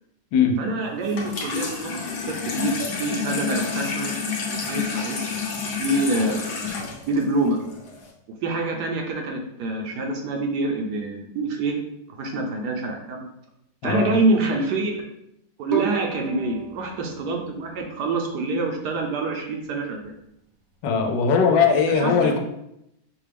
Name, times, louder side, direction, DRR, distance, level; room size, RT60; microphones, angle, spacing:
voice 1, 0.6-2.0 2.3-5.3 5.8-6.4 7.1-7.6 8.4-11.8 12.2-13.3 13.8-15.0 15.6-20.2 21.9-22.3, right 2 dB, 70° right, 2 dB, 1.1 m, -26 dB
Water tap faucet / Sink (filling or washing), 1.0-8.1, left 5 dB, 55° left, 1.0 m, -29 dB
voice 2, 13.8-14.1 20.8-22.4, left 6 dB, 75° left, 4 dB, 1.3 m, -19 dB
Bowed string instrument, 15.7-18.8, right 8 dB, 50° right, 0.8 m, -34 dB
5.8 x 2.3 x 3.3 m, 0.83 s
omnidirectional pair, 2.0 m